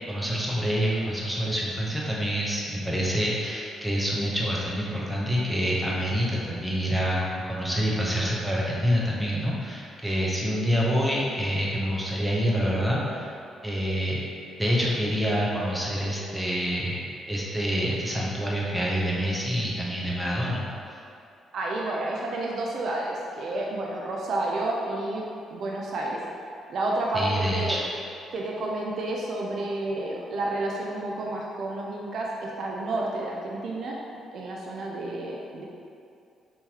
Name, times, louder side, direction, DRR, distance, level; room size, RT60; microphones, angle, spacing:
voice 1, 0.1-7.2 7.5-13.3 13.6-14.2 14.6-17.0 17.3-20.7 27.1-27.8, equal, 5° right, -5 dB, 0.7 m, -27 dB
voice 2, 21.5-26.2 26.7-27.8 28.3-34.0 34.3-35.7, right 2 dB, 60° right, -2 dB, 0.4 m, -30 dB
3.6 x 2.9 x 2.8 m, 2.5 s
cardioid pair, 90°, 0 cm